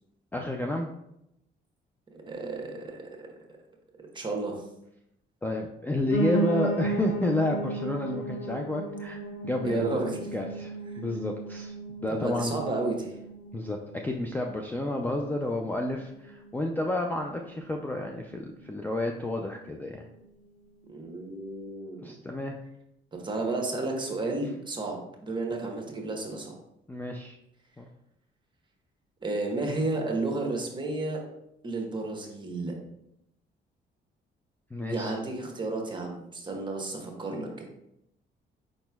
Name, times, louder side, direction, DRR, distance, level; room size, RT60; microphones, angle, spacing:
voice 1, 0.3-0.9 5.4-10.0 10.3-11.7 12.0-12.6 13.5-13.8 14.0-20.1 22.0-22.6 26.9-27.4 27.8-27.9 34.7-35.2, left 1 dB, 10° left, 2 dB, 0.4 m, -30 dB
voice 2, 2.3-3.3 4.1-4.6 9.6-10.2 12.1-13.1 20.9-22.2 23.1-26.6 29.2-31.2 31.6-32.7 34.9-37.6, right 2 dB, 25° right, 1 dB, 1.0 m, -32 dB
Piano, 6.1-15.2 15.6-16.8 17.1-17.2 17.4-17.5 17.7-17.8 18.4-18.5, right 2 dB, 85° left, 1.1 m, -34 dB
4.9 x 4.1 x 2.3 m, 0.82 s
cardioid pair, 90°, 20 cm